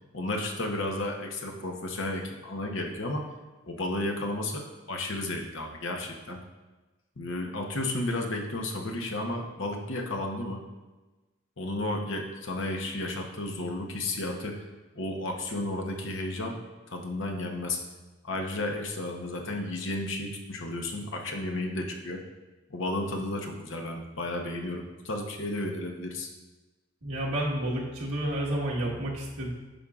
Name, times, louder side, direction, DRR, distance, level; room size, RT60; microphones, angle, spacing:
voice 1, 0.1-3.3 3.7-6.4 7.2-10.6 11.6-14.7 14.9-16.6 16.9-17.8 18.2-22.2 22.7-26.3, left 2 dB, 60° left, 2 dB, 0.9 m, -33 dB
voice 2, 27.0-29.5, right 1 dB, 75° right, -4 dB, 1.5 m, -30 dB
10.0 x 5.5 x 2.4 m, 1.2 s
head